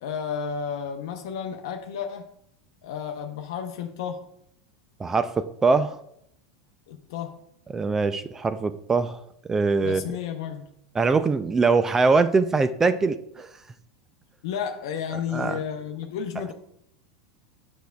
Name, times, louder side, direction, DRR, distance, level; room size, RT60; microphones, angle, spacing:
voice 1, 0.0-2.3 2.8-4.2 6.9-7.4 9.8-10.7 14.4-16.5, left 7 dB, 70° left, 4 dB, 0.6 m, -32 dB
voice 2, 5.0-6.0 7.7-9.2 9.5-10.0 11.0-13.5 15.3-15.6, right 4 dB, 20° right, 12 dB, 0.3 m, -22 dB
8.2 x 6.2 x 2.3 m, 0.73 s
hypercardioid pair, 105°, 2 cm